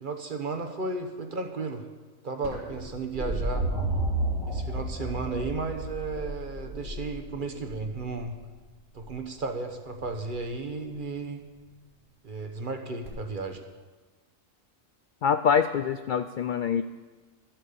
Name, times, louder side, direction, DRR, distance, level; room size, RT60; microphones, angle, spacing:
voice 1, 0.0-1.8 2.2-3.7 4.4-8.4 8.9-11.4 12.2-13.6, right 3 dB, 40° right, 5 dB, 1.2 m, -34 dB
sound 1, 2.4-8.4 10.0-10.5 13.1-13.2, right 1 dB, 75° right, 3.4 m, -32 dB
voice 2, 15.2-16.8, left 7 dB, 70° left, 11 dB, 0.4 m, -25 dB
13.0 x 8.8 x 6.9 m, 1.3 s
omnidirectional pair, 1.4 m